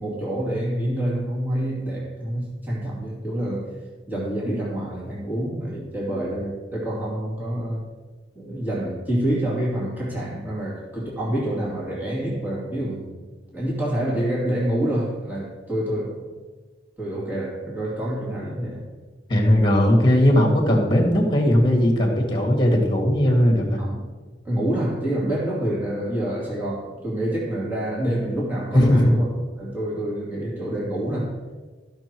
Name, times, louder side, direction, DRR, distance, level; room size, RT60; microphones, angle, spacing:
voice 1, 0.0-3.7 4.1-7.8 8.3-13.2 13.5-16.3 17.0-18.9 23.8-24.0 24.4-29.3 29.6-31.4, right 1 dB, 10° right, -6 dB, 2.5 m, -27 dB
voice 2, 19.3-23.8 28.7-29.1, left 1 dB, 25° left, 1 dB, 2.0 m, -18 dB
14.5 x 6.1 x 4.6 m, 1.3 s
head